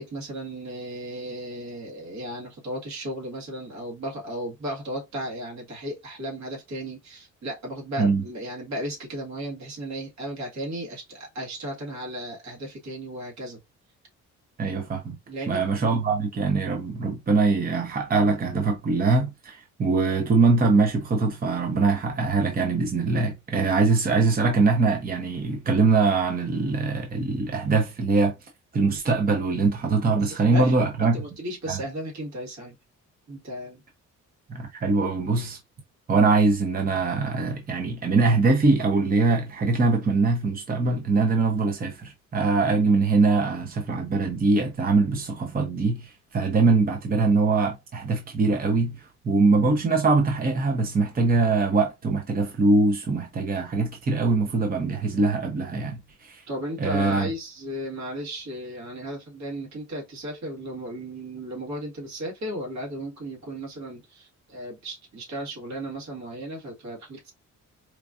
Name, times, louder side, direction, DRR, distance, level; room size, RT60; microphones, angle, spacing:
voice 1, 0.0-13.6 15.3-15.8 30.2-32.7 33.3-33.8 56.5-67.3, equal, 65° right, 1.8 m, -35 dB
voice 2, 14.6-15.2 15.5-31.2 31.7-31.8 34.5-35.6 36.1-56.4 56.8-57.3, right 3 dB, 30° right, 0.7 m, -23 dB
4.5 x 2.5 x 2.4 m
cardioid pair, 90°, 30 cm